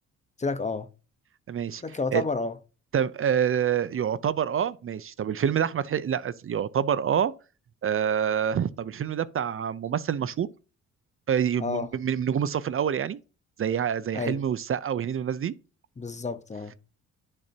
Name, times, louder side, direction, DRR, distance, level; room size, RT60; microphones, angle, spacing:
voice 1, 0.4-0.9 1.8-2.5 11.6-11.9 14.1-14.4 16.0-16.7, left 4 dB, 25° left, 1.0 m, -30 dB
voice 2, 1.5-1.8 2.1-2.2 2.9-7.3 7.8-10.5 11.3-13.2 13.6-15.5, right 8 dB, 45° right, 0.6 m, -27 dB
10.0 x 6.7 x 2.8 m
cardioid pair, 90°, 30 cm